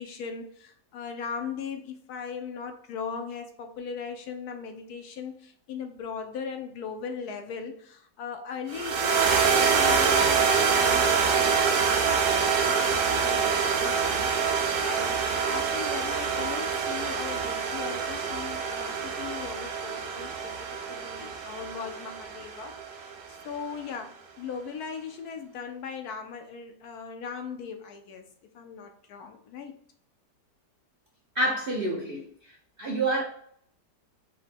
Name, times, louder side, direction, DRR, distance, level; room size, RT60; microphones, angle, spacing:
voice 1, 0.0-12.2 12.7-28.3 28.5-29.8, left 6 dB, 70° left, 5 dB, 1.0 m, -39 dB
sound 1, 8.7-23.1, right 6 dB, 70° right, 1.2 m, -26 dB
voice 2, 31.3-32.3 32.8-33.2, right 2 dB, 50° right, -4 dB, 0.6 m, -27 dB
5.0 x 2.1 x 4.2 m, 0.64 s
omnidirectional pair, 1.8 m